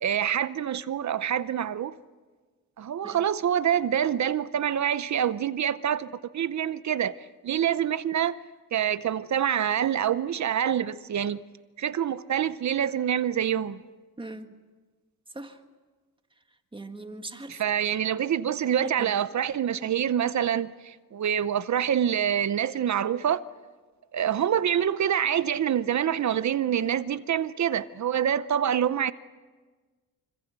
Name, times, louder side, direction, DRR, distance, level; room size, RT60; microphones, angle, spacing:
voice 1, 0.0-1.9 2.8-7.2 7.4-8.4 8.7-11.4 11.8-13.8 17.5-23.4 24.1-29.1, right 9 dB, 50° right, 0.7 m, -26 dB
voice 2, 14.2-14.5 15.3-15.6 16.7-17.6 19.0-19.1, right 2 dB, 15° right, 1.7 m, -40 dB
26.0 x 25.0 x 8.1 m
wide cardioid pair, 145°, 37 cm